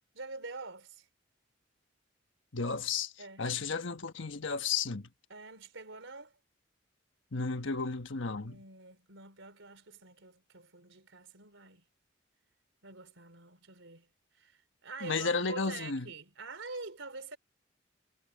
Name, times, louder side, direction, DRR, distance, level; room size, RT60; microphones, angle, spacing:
voice 1, 0.1-1.1 3.2-3.5 5.3-6.3 8.4-11.9 12.8-14.1 14.3-17.4, right 3 dB, 85° right, 3.8 m, -46 dB
voice 2, 2.5-3.1 3.4-5.1 7.3-8.6 15.0-16.1, left 4 dB, 80° left, 1.3 m, -33 dB
head